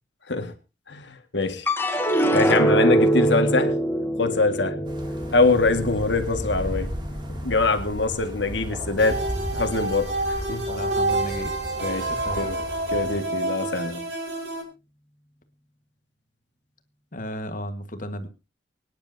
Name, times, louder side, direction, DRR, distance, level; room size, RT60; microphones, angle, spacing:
voice 1, 0.9-1.7 2.3-3.7 4.2-4.8 5.3-6.9 7.4-9.2 9.5-10.1 10.5-10.6 11.8-12.1 12.4-12.6 12.9-14.1, left 3 dB, 75° left, 1.8 m, -23 dB
sound 1, 1.7-8.1 8.5-9.2, right 1 dB, 10° left, 1.7 m, -24 dB
sound 2, 4.9-13.2, equal, 25° right, 2.5 m, -35 dB
sound 3, 9.0-14.6, right 2 dB, 75° right, 4.6 m, -28 dB
voice 2, 10.7-11.5 12.1-12.4 17.1-18.3, equal, 45° left, 1.6 m, -34 dB
25.0 x 10.0 x 2.7 m
head